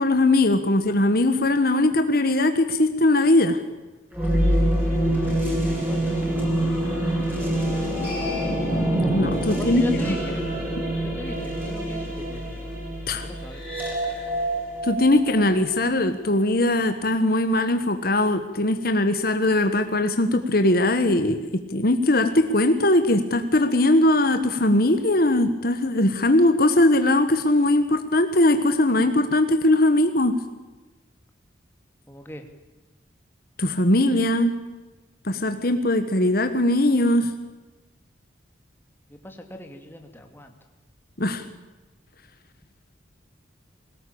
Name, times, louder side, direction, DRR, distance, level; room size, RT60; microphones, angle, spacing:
voice 1, 0.0-3.6 9.1-9.8 13.1-13.2 14.8-30.3 33.6-34.5 35.2-37.3 41.2-41.4, left 1 dB, 50° left, 8 dB, 1.4 m, -20 dB
sound 1, 4.1-16.0, right 1 dB, 10° right, 7.2 m, -25 dB
voice 2, 4.6-5.5 5.9-6.4 6.8-7.1 9.5-10.4 11.0-12.6 13.1-13.6 32.1-32.4 39.1-40.5, left 1 dB, 10° left, 4 dB, 2.6 m, -40 dB
22.0 x 18.5 x 8.8 m, 1.2 s
head